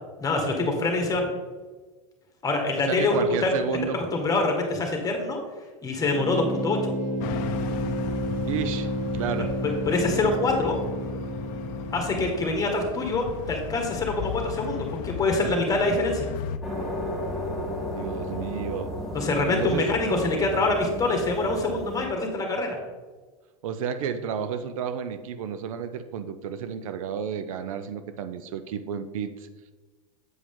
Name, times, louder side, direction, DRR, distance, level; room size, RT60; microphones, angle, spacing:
voice 1, 0.2-1.3 2.4-3.5 3.9-5.4 5.8-6.9 9.6-10.8 11.9-16.3 19.1-22.8, left 2 dB, 20° left, 2 dB, 1.6 m, -25 dB
voice 2, 2.8-4.0 6.3-6.5 8.5-9.5 18.0-18.9 19.4-19.9 23.6-29.3, right 7 dB, 70° right, 10 dB, 0.6 m, -31 dB
sound 1, 6.1-12.7, equal, 15° right, 1.4 m, -31 dB
sound 2, 7.2-16.6, left 8 dB, 50° left, 0.6 m, -36 dB
sound 3, 16.6-22.1, left 1 dB, ahead, 1.8 m, -33 dB
8.0 x 4.9 x 3.7 m, 1.3 s
hypercardioid pair, 105°, 18 cm